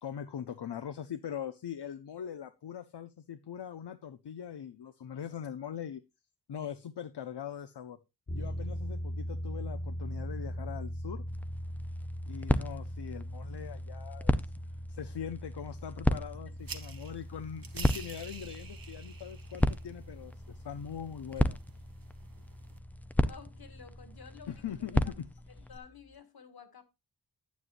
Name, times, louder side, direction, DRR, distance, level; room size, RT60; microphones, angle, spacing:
voice 1, 0.0-6.0 6.5-8.0 8.3-11.2 12.3-14.4 14.9-21.6 24.5-25.1 25.6-25.7, left 9 dB, 80° left, 0.8 m, -41 dB
sound 1, 8.3-24.6, equal, 30° left, 1.2 m, -41 dB
sound 2, 11.3-25.8, left 1 dB, 5° left, 0.6 m, -34 dB
sound 3, 16.6-22.8, right 6 dB, 55° right, 1.4 m, -49 dB
voice 2, 23.3-25.1 25.7-26.8, left 6 dB, 65° left, 2.0 m, -52 dB
11.0 x 9.5 x 2.5 m
wide cardioid pair, 140°, 41 cm